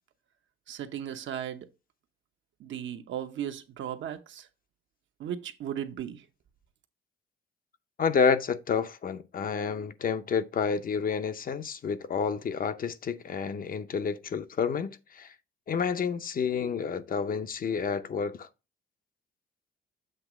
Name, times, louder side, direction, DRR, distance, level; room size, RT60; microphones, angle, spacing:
voice 1, 0.7-1.7 2.6-4.5 5.2-6.3, right 10 dB, 70° right, 0.9 m, -36 dB
voice 2, 8.0-15.3 15.7-18.5, left 6 dB, 45° left, 0.7 m, -29 dB
7.7 x 2.9 x 6.0 m
cardioid pair, 90°, 20 cm